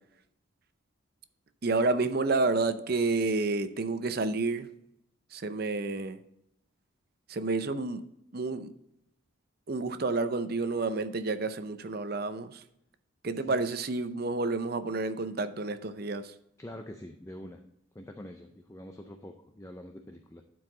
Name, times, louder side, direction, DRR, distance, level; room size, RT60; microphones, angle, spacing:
voice 1, 1.6-4.7 5.3-6.2 7.3-8.1 8.3-8.7 9.7-12.6 13.2-16.3, right 3 dB, 50° right, 11 dB, 0.6 m, -30 dB
voice 2, 16.6-17.6 17.9-20.4, left 1 dB, 15° left, 4 dB, 0.5 m, -45 dB
11.5 x 4.7 x 3.9 m, 0.78 s
head